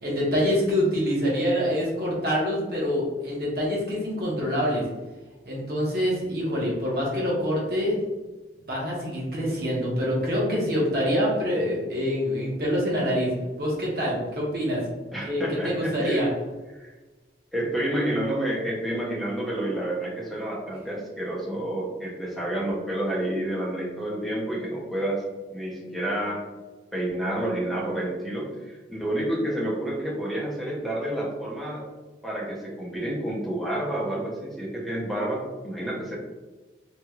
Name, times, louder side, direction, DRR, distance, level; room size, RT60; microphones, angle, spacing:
voice 1, 0.0-4.8 5.5-8.0 8.7-13.3 13.6-14.8 15.2-16.3, equal, 55° right, -5 dB, 1.0 m, -25 dB
voice 2, 15.1-16.3 16.7-16.9 17.5-26.4 26.9-31.9 32.2-36.2, right 1 dB, ahead, -5 dB, 0.7 m, -29 dB
3.1 x 2.9 x 2.4 m, 1.2 s
head